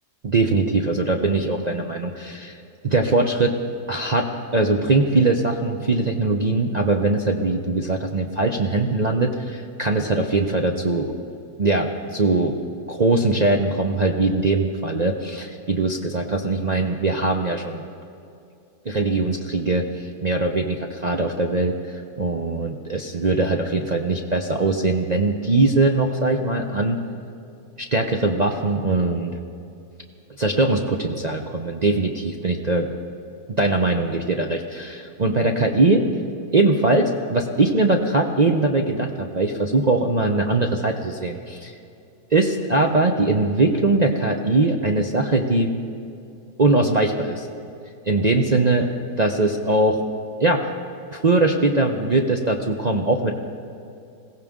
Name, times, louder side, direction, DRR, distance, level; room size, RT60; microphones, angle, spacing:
voice 1, 0.2-2.6 2.8-3.5 3.9-11.1 11.6-12.6 12.9-17.8 18.9-27.0 27.8-29.4 30.4-32.9 33.6-36.1 36.5-41.7 42.3-45.8 46.6-47.5 48.1-48.9 49.2-50.0 50.4-50.7 51.1-53.3, right 2 dB, 50° right, 1 dB, 0.5 m, -21 dB
21.0 x 16.5 x 3.7 m, 2.6 s
omnidirectional pair, 1.7 m